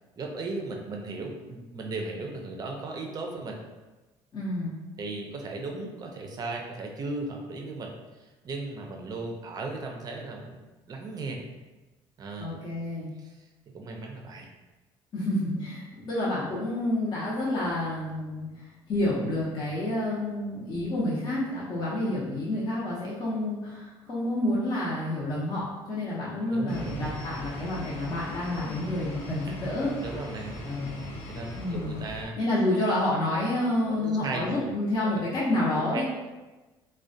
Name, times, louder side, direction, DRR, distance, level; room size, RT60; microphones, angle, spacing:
voice 1, 0.2-3.6 5.0-10.6 10.9-11.4 12.2-12.6 13.2-13.5 13.7-14.5 26.5-27.2 30.0-32.3 33.9-34.7 35.0-35.2 35.9-36.0, right 3 dB, 40° right, 2 dB, 0.4 m, -36 dB
voice 2, 4.3-4.7 12.4-13.1 15.1-29.9 30.6-31.0 31.6-31.9 32.4-36.0, left 1 dB, 40° left, -7 dB, 0.6 m, -29 dB
sound 1, 26.7-32.3, equal, 85° left, 0.4 m, -40 dB
2.3 x 2.1 x 2.5 m, 1.2 s
cardioid pair, 105°, 11 cm